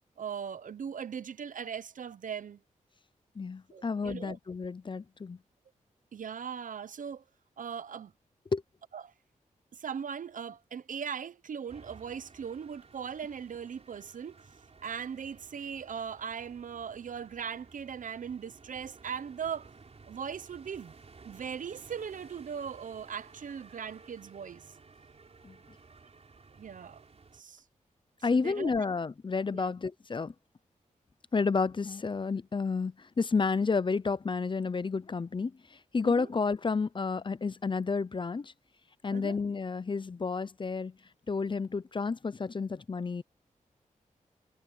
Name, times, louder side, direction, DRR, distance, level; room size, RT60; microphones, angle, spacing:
voice 1, 0.2-2.6 3.7-4.4 6.1-7.2 7.6-8.1 8.9-9.1 9.7-14.4 14.8-19.7 20.1-20.9 21.2-24.6 26.6-27.0 27.3-27.6 28.3-28.7 29.5-29.7 36.0-36.3 39.1-39.4, right 7 dB, 70° right, 0.9 m, -39 dB
voice 2, 3.4-5.4 8.5-8.6 25.4-25.6 28.2-30.3 31.3-38.5 39.0-40.9 41.3-43.2, left 4 dB, 35° left, 0.6 m, -31 dB
sound 1, 11.7-27.4, right 4 dB, 50° right, 3.8 m, -55 dB
cardioid pair, 75°, 14 cm